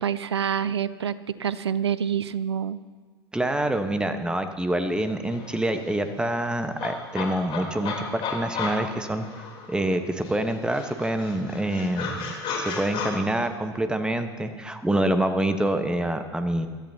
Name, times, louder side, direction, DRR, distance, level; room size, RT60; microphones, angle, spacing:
voice 1, 0.0-2.8, right 8 dB, 80° right, 16 dB, 0.6 m, -27 dB
voice 2, 3.3-9.3 9.7-16.7, right 1 dB, 5° right, 8 dB, 1.2 m, -26 dB
sound 1, 4.9-5.0 5.3-9.9 10.2-13.1, left 5 dB, 40° left, 3.5 m, -34 dB
22.5 x 13.5 x 2.8 m, 1.5 s
figure-of-eight pair, 85°, 14 cm